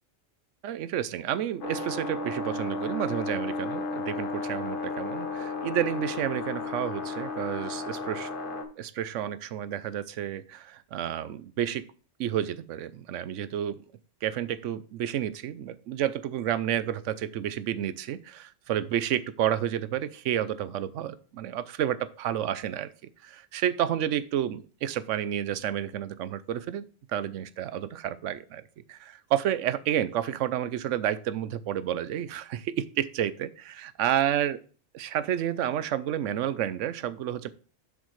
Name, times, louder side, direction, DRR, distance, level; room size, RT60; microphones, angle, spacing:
voice 1, 0.6-8.3 8.8-11.8 12.2-13.8 14.2-22.9 23.2-26.8 27.1-28.6 28.9-34.6 35.0-37.5, right 10 dB, 85° right, 0.9 m, -30 dB
sound 1, 1.6-8.6, left 3 dB, 50° left, 1.1 m, -33 dB
7.4 x 7.3 x 3.1 m
omnidirectional pair, 1.2 m